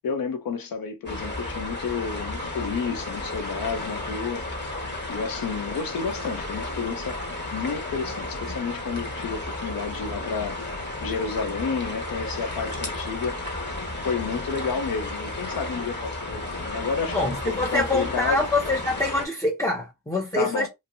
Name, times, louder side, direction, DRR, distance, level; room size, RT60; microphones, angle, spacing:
voice 1, 0.0-4.4 5.1-7.2 7.5-10.6 11.0-13.4 14.0-18.4 20.3-20.7, left 5 dB, 85° left, 0.7 m, -30 dB
sound 1, 1.1-19.3, left 2 dB, 30° left, 1.6 m, -33 dB
voice 2, 17.1-20.7, left 2 dB, 10° left, 0.8 m, -25 dB
2.8 x 2.6 x 2.7 m
cardioid pair, 45°, 34 cm